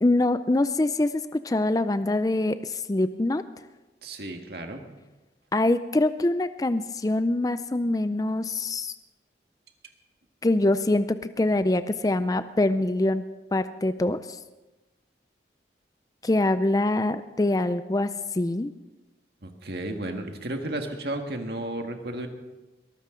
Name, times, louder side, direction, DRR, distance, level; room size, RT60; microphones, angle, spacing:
voice 1, 0.0-3.4 5.5-8.9 10.4-13.2 13.5-14.4 16.2-18.7, left 2 dB, 20° left, 12 dB, 0.4 m, -24 dB
voice 2, 4.0-4.8 19.4-22.3, right 1 dB, 65° right, 4 dB, 1.7 m, -33 dB
22.0 x 14.0 x 3.8 m, 1.1 s
head